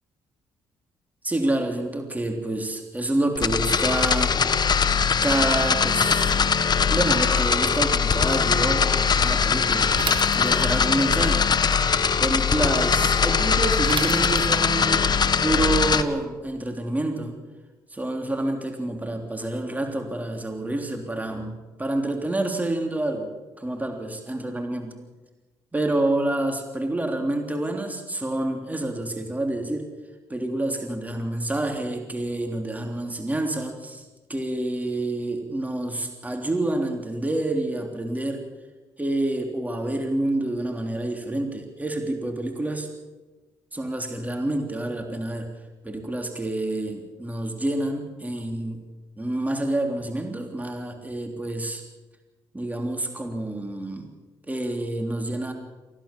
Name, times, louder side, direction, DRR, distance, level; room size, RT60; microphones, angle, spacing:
voice 1, 1.2-4.4 5.2-6.3 6.9-11.5 12.2-15.1 15.4-17.3 17.9-21.5 21.8-23.3 23.6-25.0 25.7-29.9 30.3-38.4 39.0-42.9 43.7-45.5 45.8-48.9 49.2-51.8 52.5-54.1 54.5-55.5, right 1 dB, 15° right, 4 dB, 3.4 m, -28 dB
sound 1, 3.4-16.0, left 6 dB, 45° left, 1.5 m, -21 dB
Bicycle / Mechanisms, 9.9-10.9 13.9-14.8, right 6 dB, 55° right, 3.8 m, -32 dB
25.0 x 16.0 x 7.4 m, 1.2 s
supercardioid pair, 60°, 10 cm